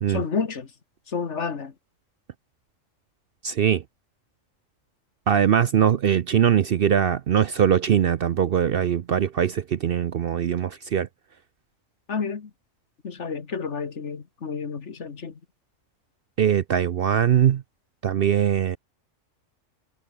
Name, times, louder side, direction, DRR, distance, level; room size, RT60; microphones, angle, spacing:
voice 1, 0.1-0.7 1.1-1.7 12.1-12.5 13.0-15.4, left 5 dB, 60° left, 1.9 m, -30 dB
voice 2, 3.4-3.8 5.3-11.1 16.4-17.6 18.0-18.8, right 9 dB, 55° right, 0.7 m, -21 dB
omnidirectional pair, 1.4 m